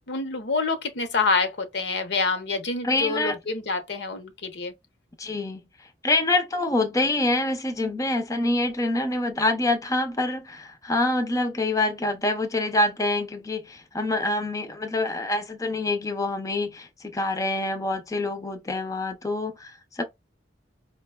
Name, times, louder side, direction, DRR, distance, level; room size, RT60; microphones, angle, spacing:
voice 1, 0.1-4.7, left 4 dB, 65° left, 0.7 m, -27 dB
voice 2, 2.8-3.4 5.2-5.6 6.0-20.0, left 2 dB, 20° left, 0.5 m, -26 dB
4.9 x 2.2 x 2.2 m
head